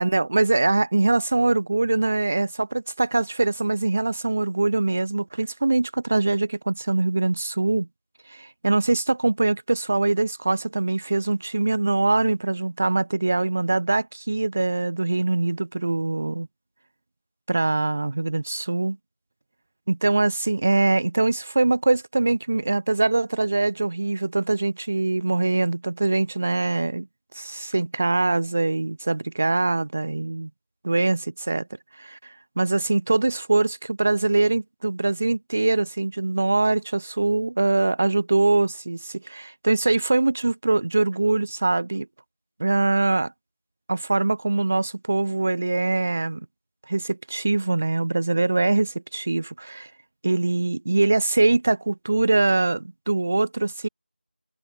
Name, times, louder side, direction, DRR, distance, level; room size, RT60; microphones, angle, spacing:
voice 1, 0.0-7.9 8.3-16.5 17.5-19.0 19.9-27.1 27.3-30.5 30.8-31.7 32.0-42.1 42.6-43.3 43.9-46.5 46.9-49.9 50.2-53.9, right 2 dB, 5° right, 0.6 m, -23 dB
figure-of-eight pair, 175°, 6 cm